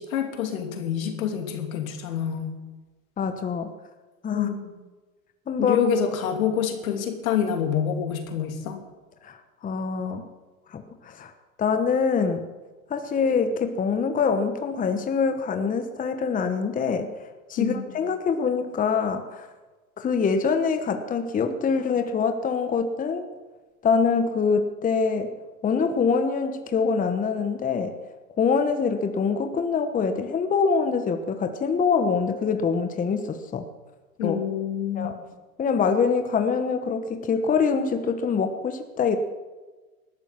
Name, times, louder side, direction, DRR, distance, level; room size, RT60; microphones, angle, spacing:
voice 1, 0.0-2.6 4.3-4.8 5.6-8.8 17.6-18.0 34.2-35.3, left 8 dB, 75° left, 4 dB, 3.0 m, -27 dB
voice 2, 3.2-3.7 4.2-4.5 5.5-5.8 9.2-10.3 10.7-11.3 11.6-12.5 12.9-17.1 17.5-19.5 20.0-23.3 23.8-25.3 25.6-27.9 28.4-33.6 34.2-34.4 34.9-35.1 35.6-39.2, left 5 dB, 20° left, 7 dB, 1.2 m, -24 dB
19.5 x 12.5 x 5.9 m, 1.3 s
hypercardioid pair, 110°, 42 cm